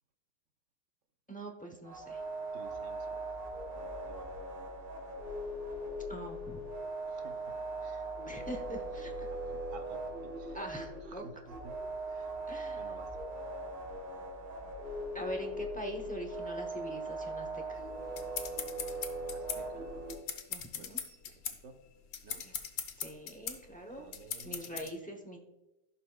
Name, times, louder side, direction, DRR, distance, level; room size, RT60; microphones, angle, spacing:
voice 1, 1.3-2.2 6.1-6.6 8.2-9.3 10.5-11.2 12.5-12.8 15.1-17.8 20.5-21.0 22.4-22.5 23.0-24.1 24.4-25.4, right 1 dB, 15° left, 2 dB, 0.3 m, -43 dB
sound 1, 1.8-20.1, right 2 dB, 85° right, 3.4 m, -40 dB
voice 2, 2.5-3.3 3.7-4.3 7.1-8.1 9.3-10.6 11.0-11.8 12.1-12.3 12.7-13.2 19.3-19.9 20.7-21.8 22.2-22.4 23.9-24.9, right 4 dB, 55° right, 6 dB, 1.0 m, -53 dB
sound 2, 17.8-24.9, left 8 dB, 60° left, 1.1 m, -40 dB
15.5 x 5.6 x 2.3 m, 0.98 s
omnidirectional pair, 1.9 m